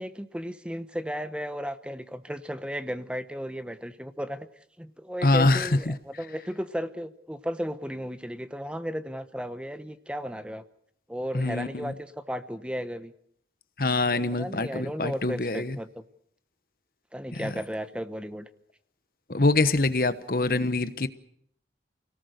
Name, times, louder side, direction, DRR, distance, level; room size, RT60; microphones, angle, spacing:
voice 1, 0.0-4.5 4.8-10.6 11.1-13.1 14.1-16.0 17.1-18.5, equal, 5° right, 1.0 m, -35 dB
voice 2, 5.2-5.9 11.3-11.9 13.8-15.8 17.3-17.5 19.3-21.1, left 2 dB, 55° left, 1.1 m, -24 dB
29.5 x 18.5 x 6.7 m
head